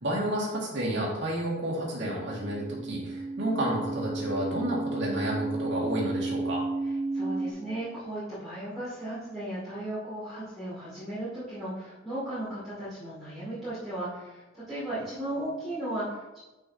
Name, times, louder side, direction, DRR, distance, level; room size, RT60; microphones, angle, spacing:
voice 1, 0.0-6.6, right 1 dB, 70° right, -4 dB, 2.1 m, -30 dB
sound 1, 1.7-7.5, right 3 dB, 25° right, 0.9 m, -33 dB
voice 2, 7.1-16.4, right 1 dB, ahead, -14 dB, 2.5 m, -36 dB
9.3 x 5.5 x 2.8 m, 1.1 s
head